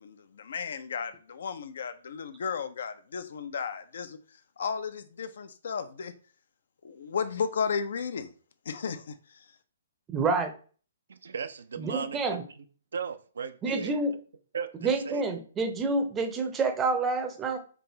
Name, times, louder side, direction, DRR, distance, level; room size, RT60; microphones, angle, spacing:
voice 1, 0.0-4.2 4.6-6.1 6.8-8.3 8.7-9.2, left 6 dB, 55° left, 0.4 m, -34 dB
voice 2, 10.1-10.5 11.8-12.4 13.6-14.1 14.8-17.6, right 3 dB, 15° right, 0.6 m, -28 dB
voice 3, 11.1-12.4 12.9-13.9 14.5-15.4, right 6 dB, 60° right, 0.3 m, -37 dB
4.6 x 2.5 x 2.9 m
figure-of-eight pair, 125°, 0 cm